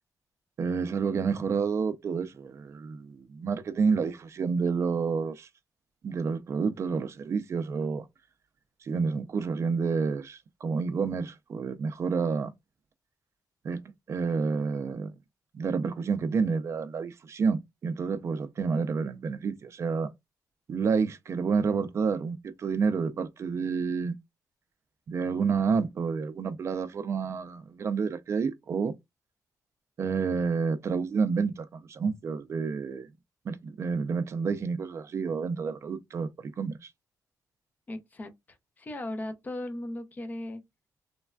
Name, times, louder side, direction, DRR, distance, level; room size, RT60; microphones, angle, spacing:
voice 1, 0.6-5.5 6.0-8.1 8.8-12.5 13.6-13.8 14.1-15.1 15.5-20.1 20.7-24.2 25.1-29.0 30.0-33.1 33.5-36.9, right 5 dB, 45° right, 0.4 m, -29 dB
voice 2, 37.9-40.6, left 1 dB, 25° left, 0.6 m, -37 dB
3.2 x 2.2 x 2.2 m
wide cardioid pair, 135°, 7 cm